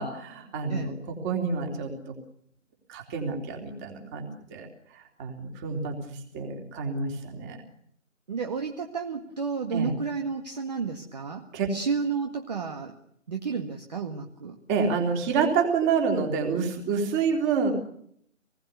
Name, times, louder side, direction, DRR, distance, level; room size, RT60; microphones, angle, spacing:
voice 1, 0.0-2.1 2.9-4.7 4.9-7.6 9.7-9.9 11.5-11.7 14.7-17.7, right 5 dB, 15° right, 3 dB, 3.5 m, -28 dB
voice 2, 8.3-12.9 13.3-14.6, right 5 dB, 30° right, 4 dB, 1.9 m, -32 dB
26.5 x 20.5 x 6.9 m, 0.68 s
figure-of-eight pair, 155°, 39 cm